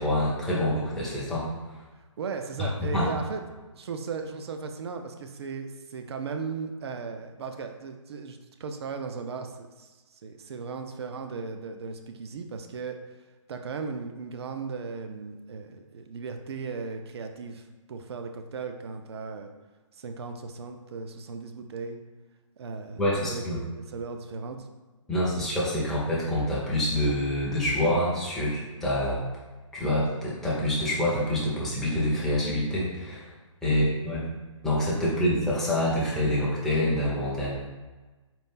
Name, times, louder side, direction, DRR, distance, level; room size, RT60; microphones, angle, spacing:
voice 1, 0.0-1.4 2.6-3.2 23.0-23.6 25.1-29.2 29.7-33.3 33.6-34.2 34.6-37.5, left 1 dB, ahead, -8 dB, 0.6 m, -26 dB
voice 2, 2.2-3.4 3.7-13.0 13.5-19.5 19.9-22.0 22.6-24.7 33.7-33.9, right 5 dB, 50° right, 6 dB, 0.4 m, -37 dB
4.2 x 2.4 x 3.6 m, 1.2 s
hypercardioid pair, 150°, 17 cm